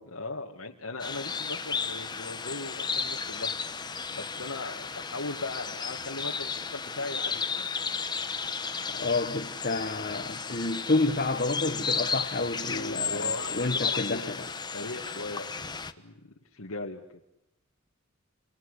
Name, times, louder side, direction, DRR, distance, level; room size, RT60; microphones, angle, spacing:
voice 1, 0.1-3.5 4.2-7.7 12.7-14.4 14.7-16.1 16.5-17.2, left 3 dB, 85° left, 2.1 m, -38 dB
sound 1, 1.0-15.9, left 5 dB, 20° left, 1.2 m, -34 dB
voice 2, 8.9-14.4, left 2 dB, 45° left, 1.4 m, -29 dB
29.5 x 24.5 x 8.2 m
head